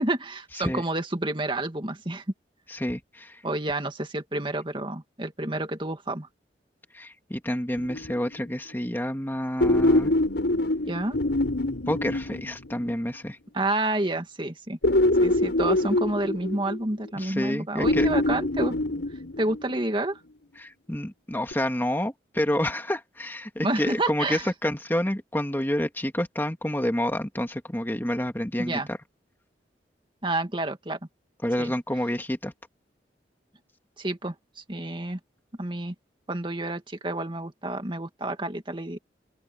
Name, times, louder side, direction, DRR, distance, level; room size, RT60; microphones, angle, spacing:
voice 1, 0.0-2.2 3.4-6.3 10.9-11.2 13.5-14.8 15.2-18.8 19.4-20.2 23.6-24.5 28.6-28.9 30.2-31.0 31.6-31.7 34.0-35.2 35.6-35.9 36.3-39.0, right 2 dB, 30° right, 2.1 m, -29 dB
voice 2, 2.7-3.4 6.9-10.1 11.9-13.4 17.2-18.1 20.6-29.0 31.4-32.5, left 1 dB, 10° left, 2.0 m, -28 dB
sound 1, 7.8-8.5 9.6-13.2 14.8-17.1 17.8-19.8 21.5-21.6, left 1 dB, 85° left, 5.0 m, -25 dB
open air
head